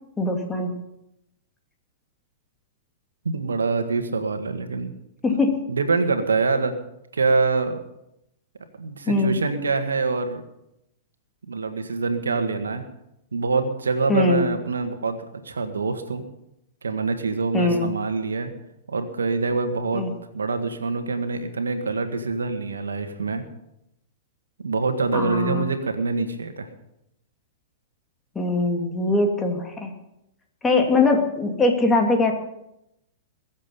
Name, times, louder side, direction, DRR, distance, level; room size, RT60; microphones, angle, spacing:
voice 1, 0.2-0.7 5.2-5.6 9.1-9.4 14.1-14.5 17.5-17.9 19.9-20.1 25.1-25.7 28.3-29.9 30.6-32.3, left 2 dB, 15° left, 2 dB, 2.8 m, -21 dB
voice 2, 3.2-4.9 5.7-6.7 7.1-7.8 8.8-10.4 11.5-12.8 13.3-15.2 15.4-16.3 16.8-18.5 18.9-20.0 20.3-23.4 24.6-26.7, right 4 dB, 90° right, 8 dB, 1.7 m, -25 dB
22.0 x 7.6 x 5.6 m, 0.84 s
hypercardioid pair, 110°, 0 cm